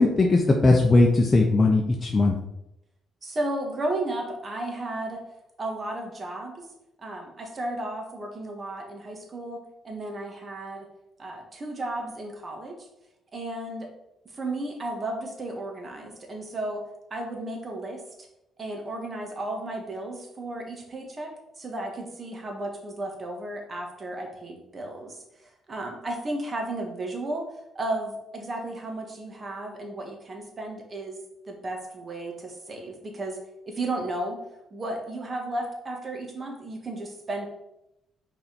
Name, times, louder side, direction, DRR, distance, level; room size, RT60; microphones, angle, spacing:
voice 1, 0.0-2.4, left 2 dB, 25° left, 0 dB, 0.8 m, -19 dB
voice 2, 3.2-5.2 5.6-6.6 7.0-9.6 9.8-10.9 11.2-12.7 13.3-13.9 14.3-16.8 17.1-18.0 18.6-21.3 21.6-27.4 27.7-31.2 31.5-33.4 33.6-34.4 34.7-37.5, right 2 dB, 35° right, 2 dB, 1.7 m, -34 dB
5.7 x 4.1 x 5.2 m, 0.86 s
cardioid pair, 90°, 0 cm